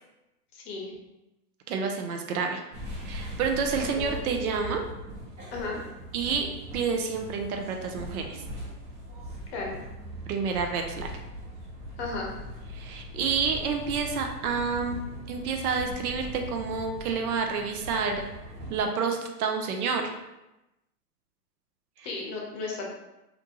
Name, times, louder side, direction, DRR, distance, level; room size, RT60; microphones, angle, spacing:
voice 1, 0.5-0.9 3.7-4.3 5.5-5.8 9.5-9.8 12.0-12.4 22.0-22.9, left 3 dB, 40° left, -1 dB, 0.8 m, -34 dB
voice 2, 1.7-2.6 3.0-4.8 6.1-6.5 6.7-8.4 10.3-11.1 12.7-15.0 15.3-18.2 18.7-20.1 22.0-22.1, right 5 dB, 65° right, 4 dB, 0.5 m, -29 dB
sound 1, 2.7-18.9, equal, 30° right, 1.1 m, -40 dB
2.5 x 2.2 x 2.8 m, 0.96 s
hypercardioid pair, 115°, 48 cm